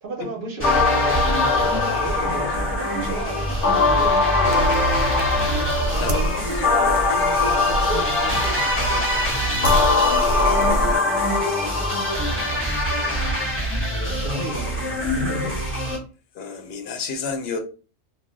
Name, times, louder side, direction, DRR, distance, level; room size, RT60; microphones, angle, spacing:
voice 1, 0.0-5.5 6.0-9.9 11.1-15.7, right 2 dB, 55° right, 0.8 m, -35 dB
sound 1, 0.6-12.6, left 4 dB, 80° left, 1.0 m, -22 dB
sound 2, 0.6-16.0, equal, 10° left, 0.8 m, -26 dB
sound 3, 4.4-11.0, right 2 dB, 80° right, 0.9 m, -28 dB
voice 2, 6.0-6.4 10.5-11.2 11.4-12.0 16.3-17.6, left 5 dB, 65° left, 0.8 m, -32 dB
2.4 x 2.1 x 3.7 m
omnidirectional pair, 1.2 m